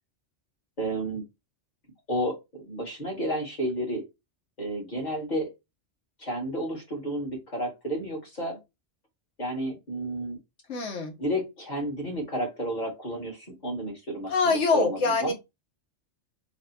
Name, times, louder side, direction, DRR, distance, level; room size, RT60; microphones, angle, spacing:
voice 1, 0.8-1.2 2.1-2.4 2.7-4.0 4.6-5.5 6.2-8.6 9.4-10.4 11.2-15.3, right 1 dB, 40° left, 1.4 m, -31 dB
voice 2, 10.7-11.1 14.3-15.3, left 4 dB, 70° left, 1.2 m, -24 dB
3.3 x 2.1 x 4.0 m
omnidirectional pair, 1.2 m